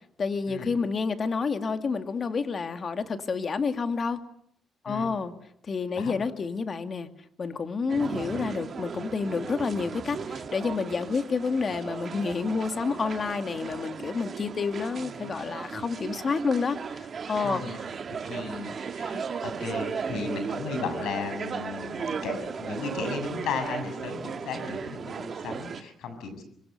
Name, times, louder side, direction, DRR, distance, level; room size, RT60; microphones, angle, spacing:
voice 1, 0.2-4.2 4.8-5.3 5.6-7.1 7.4-17.6 19.1-19.2, left 5 dB, 40° left, 8 dB, 2.5 m, -29 dB
sound 1, 7.9-25.8, right 6 dB, 45° right, 2.1 m, -36 dB
voice 2, 17.4-17.9 18.2-26.4, left 4 dB, 80° left, 9 dB, 7.1 m, -35 dB
27.0 x 24.0 x 8.0 m, 0.69 s
cardioid pair, 90°, 0 cm